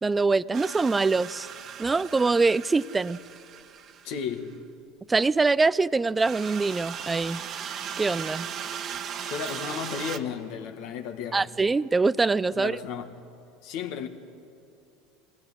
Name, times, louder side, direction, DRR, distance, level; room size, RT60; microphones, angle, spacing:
voice 1, 0.0-1.5 1.8-3.2 5.1-7.4 8.0-8.5 11.3-12.8, right 3 dB, 20° right, 0.5 m, -24 dB
sound 1, 0.5-4.4 6.2-10.2, right 8 dB, 45° right, 1.5 m, -37 dB
voice 2, 4.0-4.6 9.2-11.5 12.5-13.2 13.6-14.1, left 7 dB, 60° left, 1.9 m, -34 dB
22.5 x 17.5 x 9.9 m
hypercardioid pair, 80°, 0 cm